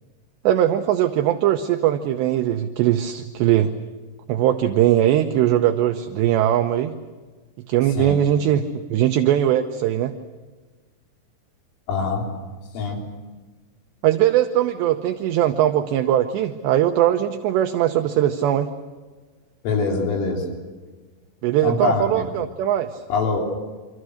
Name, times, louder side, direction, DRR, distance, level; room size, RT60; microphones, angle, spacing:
voice 1, 0.4-3.7 4.3-6.9 7.7-10.1 14.0-18.7 21.4-23.0, right 11 dB, 75° right, 6 dB, 2.7 m, -20 dB
voice 2, 11.9-12.3 12.7-13.0 19.6-20.5 21.6-22.3 23.1-23.4, left 4 dB, 90° left, 1 dB, 6.1 m, -23 dB
27.5 x 26.0 x 6.5 m, 1.3 s
omnidirectional pair, 5.7 m